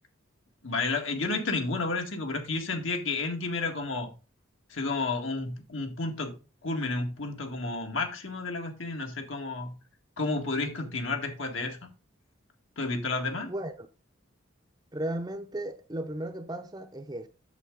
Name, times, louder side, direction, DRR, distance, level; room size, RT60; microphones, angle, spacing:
voice 1, 0.6-4.1 4.7-6.4 6.6-9.7 10.2-11.9 12.8-13.5, left 3 dB, 75° left, 1.9 m, -31 dB
voice 2, 14.9-17.3, right 1 dB, 20° right, 0.7 m, -35 dB
8.2 x 6.9 x 3.8 m
head